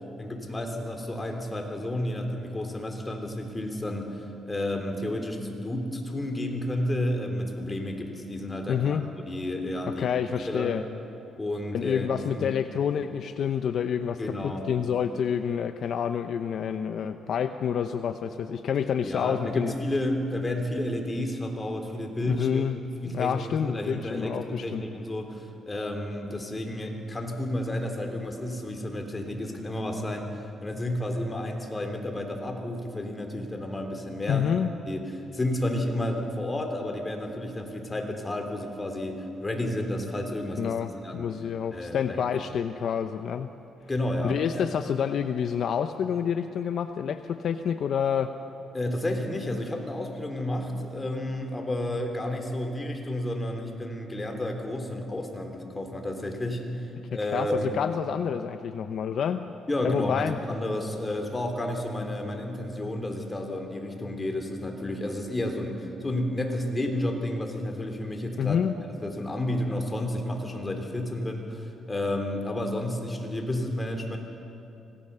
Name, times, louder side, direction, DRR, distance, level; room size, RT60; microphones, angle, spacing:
voice 1, 0.2-9.0 9.3-10.1 10.4-10.7 11.3-12.5 14.2-14.7 19.0-22.6 23.0-34.5 34.9-40.8 41.0-41.3 41.7-42.2 43.9-44.7 48.7-57.8 59.7-74.2, left 1 dB, 20° left, 4 dB, 3.3 m, -31 dB
voice 2, 8.7-9.1 9.9-10.8 11.7-19.7 22.3-22.8 23.0-24.8 34.3-34.7 40.6-43.5 44.2-48.3 57.3-59.4 59.8-60.4 68.4-68.7, left 8 dB, 65° left, 9 dB, 0.7 m, -28 dB
25.5 x 18.0 x 6.8 m, 2.8 s
cardioid pair, 90°, 0 cm